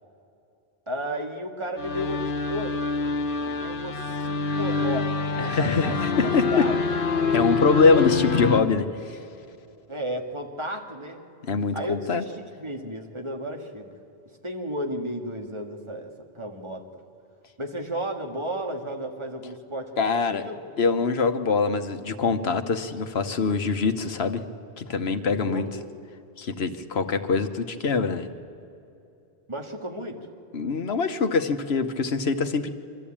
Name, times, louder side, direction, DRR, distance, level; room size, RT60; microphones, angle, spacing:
voice 1, 0.9-2.8 3.4-6.8 7.9-8.1 9.9-11.2 11.7-13.9 14.4-16.9 17.6-20.6 25.4-25.9 29.5-30.3, equal, 30° right, 2 dB, 1.9 m, -33 dB
sound 1, 1.8-8.6, left 4 dB, 60° left, 1.1 m, -26 dB
voice 2, 5.4-6.5 7.3-9.2 11.4-12.2 20.0-20.4 20.8-24.4 24.8-25.7 26.4-28.3 30.5-32.7, left 4 dB, 85° left, 8 dB, 1.3 m, -24 dB
24.5 x 14.0 x 8.7 m, 2.8 s
omnidirectional pair, 1.0 m